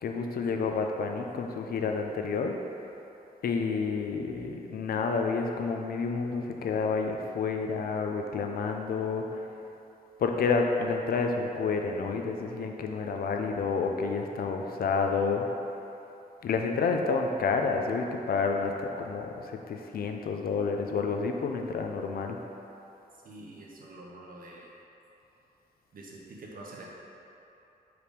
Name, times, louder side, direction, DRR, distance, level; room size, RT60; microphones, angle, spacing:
voice 1, 0.0-2.5 3.4-9.4 10.2-15.4 16.4-22.4, left 4 dB, 70° left, 3 dB, 0.6 m, -29 dB
voice 2, 23.2-24.7 25.9-26.9, right 2 dB, 65° right, -3 dB, 1.2 m, -46 dB
5.1 x 4.8 x 5.1 m, 3.0 s
cardioid pair, 95°, 16 cm